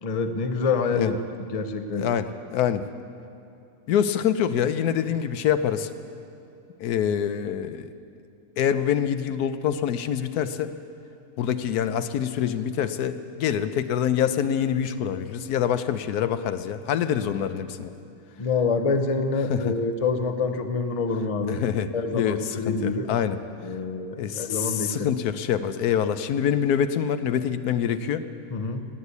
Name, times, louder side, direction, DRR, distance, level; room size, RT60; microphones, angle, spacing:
voice 1, 0.0-1.2 1.5-2.1 18.4-21.6 21.9-23.1 23.6-25.1 28.5-28.9, left 4 dB, 35° left, 8 dB, 0.6 m, -26 dB
voice 2, 1.9-2.8 3.9-5.9 6.8-7.9 8.6-10.7 11.4-17.9 19.5-19.7 21.5-23.4 24.2-28.2, left 9 dB, 85° left, 11 dB, 1.2 m, -25 dB
19.0 x 8.2 x 8.3 m, 2.6 s
omnidirectional pair, 1.6 m